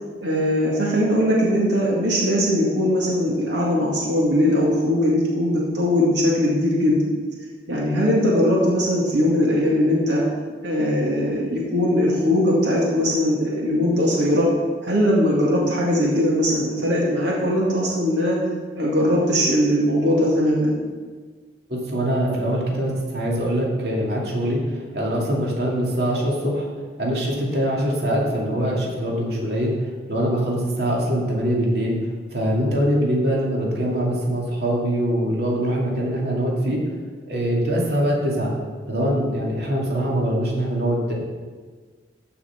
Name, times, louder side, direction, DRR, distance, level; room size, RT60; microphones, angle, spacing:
voice 1, 0.2-7.0 7.7-10.2 10.6-14.5 14.8-18.4 18.7-20.8, equal, 85° right, -4 dB, 2.3 m, -20 dB
voice 2, 21.7-26.7 27.0-36.8 37.3-38.5 38.9-41.1, equal, 60° right, -3 dB, 2.6 m, -23 dB
14.5 x 5.9 x 5.9 m, 1.5 s
head